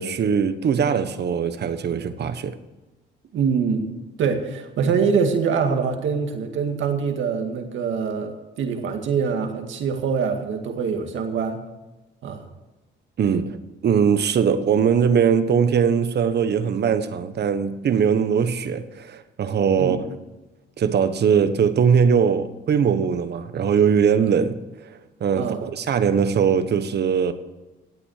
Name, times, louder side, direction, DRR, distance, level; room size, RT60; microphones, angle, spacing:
voice 1, 0.0-2.5 13.2-13.6 13.8-20.1 20.8-27.3, right 7 dB, 55° right, 1.2 m, -21 dB
voice 2, 3.3-3.9 4.2-11.6 12.2-12.4 19.8-20.0 25.3-25.6, right 6 dB, 75° right, 2.1 m, -24 dB
16.5 x 8.7 x 6.6 m
cardioid pair, 90°, 20 cm